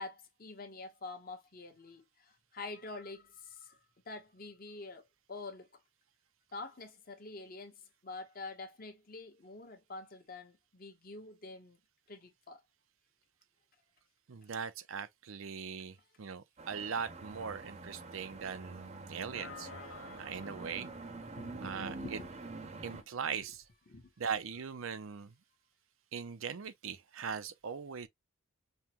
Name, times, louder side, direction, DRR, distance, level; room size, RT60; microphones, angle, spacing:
voice 1, 0.0-3.8 4.1-5.7 6.5-11.8 12.1-12.6 21.3-22.3 22.6-23.0 23.9-24.0, left 3 dB, 45° left, 1.1 m, -47 dB
voice 2, 14.3-19.7 20.2-20.9 21.6-22.2 22.8-23.6 24.2-25.3 26.1-28.1, right 6 dB, 80° right, 0.6 m, -40 dB
sound 1, 16.6-23.0, right 3 dB, 35° right, 0.7 m, -46 dB
sound 2, 18.0-18.9 19.3-22.1, left 6 dB, 80° left, 0.6 m, -53 dB
5.5 x 2.2 x 2.9 m
head